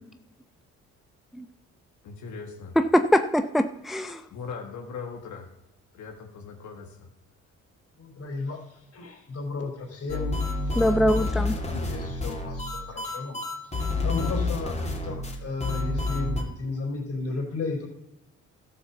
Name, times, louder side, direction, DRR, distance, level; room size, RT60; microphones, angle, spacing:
voice 1, 2.0-2.7 4.3-5.5 5.9-7.1 11.7-12.0 14.1-14.4, left 5 dB, 75° left, 2 dB, 1.8 m, -39 dB
voice 2, 2.8-4.2 10.8-11.6, equal, ahead, 9 dB, 0.6 m, -23 dB
voice 3, 8.0-13.4 13.6-17.9, left 3 dB, 50° left, 2 dB, 4.2 m, -34 dB
sound 1, 10.1-16.4, left 2 dB, 20° left, 2.8 m, -29 dB
12.5 x 7.0 x 7.0 m, 0.91 s
cardioid pair, 90°, 30 cm